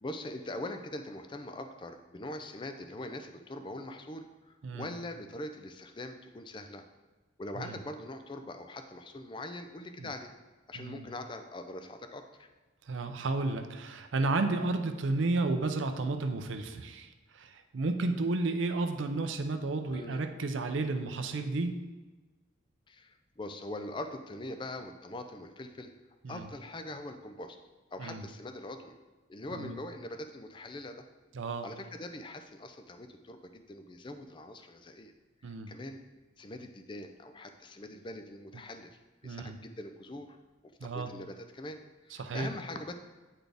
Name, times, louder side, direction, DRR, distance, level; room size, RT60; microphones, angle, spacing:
voice 1, 0.0-6.8 7.4-10.3 10.7-12.5 19.9-20.2 22.9-25.9 26.3-27.6 27.9-28.9 29.3-31.0 31.6-35.1 35.4-36.0 36.4-40.4 40.8-42.9, left 1 dB, 25° left, 7 dB, 0.4 m, -42 dB
voice 2, 12.9-21.7 26.2-26.5 28.0-28.3 29.5-29.7 31.3-31.7 35.4-35.7 39.2-39.6 40.8-41.1 42.2-42.5, right 3 dB, 75° right, 7 dB, 0.5 m, -32 dB
8.9 x 4.1 x 3.4 m, 1.2 s
head